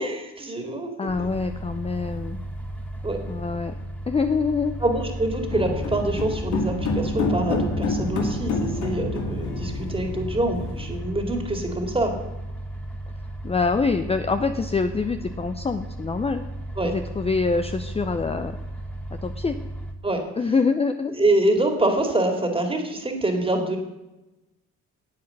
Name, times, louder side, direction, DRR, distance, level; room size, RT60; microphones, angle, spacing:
voice 1, 0.0-1.3 3.0-3.2 4.8-12.2 16.8-17.0 20.0-20.2 21.1-23.8, right 1 dB, 20° right, 4 dB, 2.3 m, -25 dB
voice 2, 1.0-2.4 3.3-3.7 4.1-4.7 13.4-16.4 16.8-18.6 19.2-19.6 20.4-21.1, left 4 dB, 20° left, 8 dB, 0.6 m, -25 dB
sound 1, 1.1-19.9, right 1 dB, 5° left, 1.5 m, -35 dB
sound 2, 5.5-11.0, left 3 dB, 75° left, 2.2 m, -28 dB
9.6 x 8.3 x 6.6 m, 1.0 s
cardioid pair, 90°, 30 cm